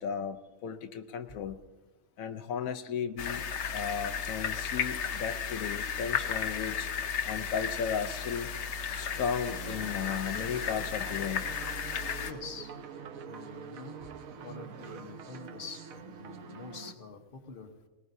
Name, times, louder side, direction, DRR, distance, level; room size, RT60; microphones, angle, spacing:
voice 1, 0.0-1.6 2.2-3.4 3.7-6.9 7.3-8.5 8.9-11.5, left 7 dB, 85° left, 8 dB, 1.1 m, -35 dB
sound 1, 3.2-12.3, left 6 dB, 60° left, 1.0 m, -34 dB
sound 2, 9.5-16.9, right 6 dB, 85° right, 1.3 m, -45 dB
voice 2, 12.2-12.7 13.2-17.7, left 5 dB, 45° left, 3 dB, 1.3 m, -46 dB
20.0 x 19.5 x 2.7 m, 1.2 s
omnidirectional pair, 1.4 m